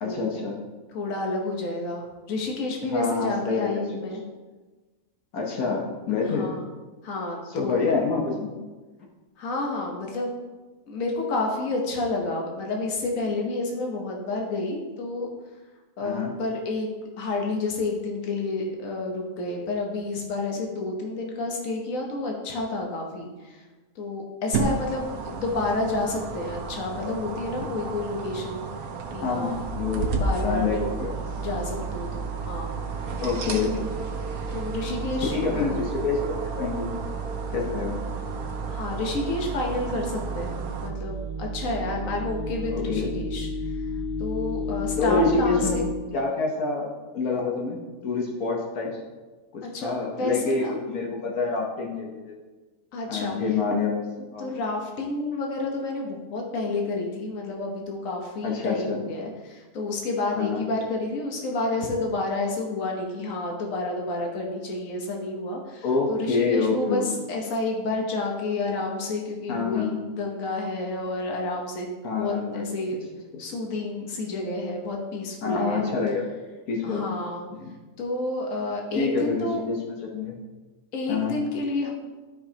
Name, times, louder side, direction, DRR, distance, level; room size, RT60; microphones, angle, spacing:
voice 1, 0.0-0.6 2.9-4.1 5.3-6.5 7.5-8.5 16.0-16.3 29.2-30.1 30.4-31.1 33.2-33.7 35.3-36.9 37.5-38.0 42.7-43.1 45.0-46.9 47.1-48.9 49.5-52.3 53.1-54.0 54.3-54.5 58.4-59.0 60.4-60.6 65.8-67.0 69.5-70.1 72.0-72.6 75.4-76.3 76.7-77.1 77.6-77.7 78.9-80.3 81.1-81.3, left 4 dB, 85° left, -1 dB, 1.5 m, -27 dB
voice 2, 0.9-4.2 6.2-6.6 7.0-7.8 9.4-10.4 10.9-15.3 16.0-16.9 17.2-23.6 23.9-28.6 29.1-29.6 30.2-30.8 31.4-32.8 33.5-33.8 34.5-35.8 38.6-43.7 44.2-45.8 49.6-50.8 52.9-53.4 54.4-72.9 73.4-75.9 76.8-77.5 78.0-79.6 80.9-81.9, left 2 dB, 70° left, 0 dB, 1.5 m, -30 dB
sound 1, 24.5-40.9, right 4 dB, 85° right, 1.3 m, -34 dB
sound 2, 29.5-45.9, right 1 dB, 35° right, 1.7 m, -33 dB
12.5 x 5.0 x 2.9 m, 1.3 s
omnidirectional pair, 1.5 m